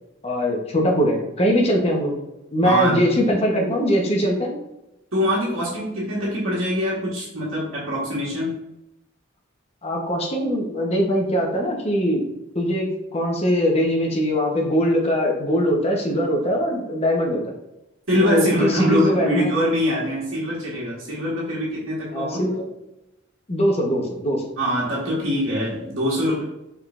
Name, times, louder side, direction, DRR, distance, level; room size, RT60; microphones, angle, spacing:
voice 1, 0.2-2.2 2.5-4.6 9.8-12.3 12.5-17.4 18.2-19.6 22.1-22.6 23.5-24.4, equal, 30° left, 0 dB, 1.0 m, -21 dB
voice 2, 2.6-3.0 5.1-8.6 18.1-22.4 24.6-26.4, equal, 80° right, -6 dB, 1.5 m, -23 dB
5.2 x 3.8 x 2.5 m, 0.91 s
head